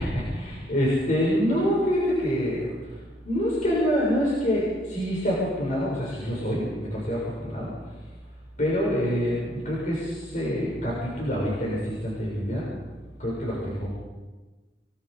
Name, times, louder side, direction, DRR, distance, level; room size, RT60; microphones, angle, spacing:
voice 1, 0.0-3.0 3.2-7.7 8.6-12.7 13.2-13.9, equal, 45° left, -5 dB, 6.7 m, -26 dB
28.5 x 21.0 x 5.2 m, 1.2 s
head